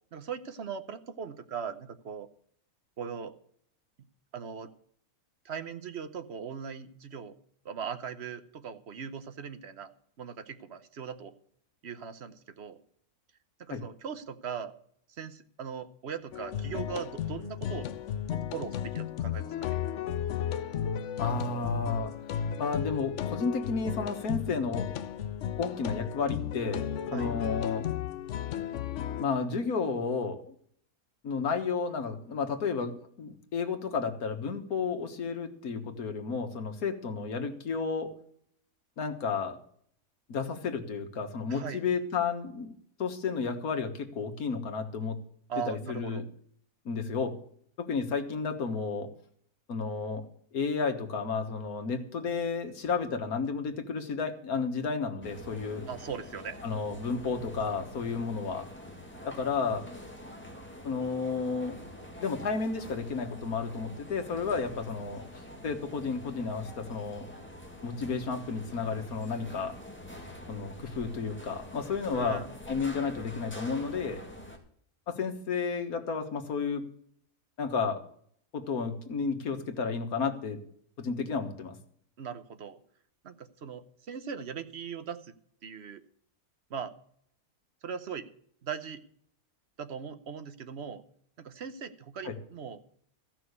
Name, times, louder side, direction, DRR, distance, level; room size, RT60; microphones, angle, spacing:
voice 1, 0.1-2.3 3.0-3.3 4.3-4.7 5.4-7.4 7.6-9.9 10.2-11.3 11.8-12.8 13.6-14.7 15.2-17.9 18.3-19.8 27.1-27.3 41.5-41.8 45.5-46.2 55.9-56.6 72.1-72.5 82.2-82.8 83.2-85.2 85.6-86.0 86.7-86.9 87.8-88.3 88.6-89.0 89.8-91.0 91.4-92.8, right 7 dB, 50° right, 11 dB, 1.0 m, -39 dB
sound 1, 16.3-29.2, left 9 dB, 60° left, 0.9 m, -34 dB
voice 2, 21.2-22.1 22.6-24.9 25.6-27.9 29.2-30.5 31.2-38.1 39.0-39.6 40.3-42.7 43.0-45.2 45.7-46.2 46.9-47.4 47.8-49.1 49.7-50.3 50.5-55.8 56.6-58.7 59.2-59.9 60.8-61.8 62.2-65.2 65.6-67.3 67.8-69.7 70.5-74.2 75.1-76.8 77.6-78.0 78.5-80.6 81.0-81.8 92.2-92.4, left 5 dB, 80° left, 6 dB, 1.9 m, -32 dB
sound 2, 55.2-74.6, left 1 dB, 10° left, 1.8 m, -46 dB
14.5 x 6.1 x 8.0 m, 0.63 s
omnidirectional pair, 1.5 m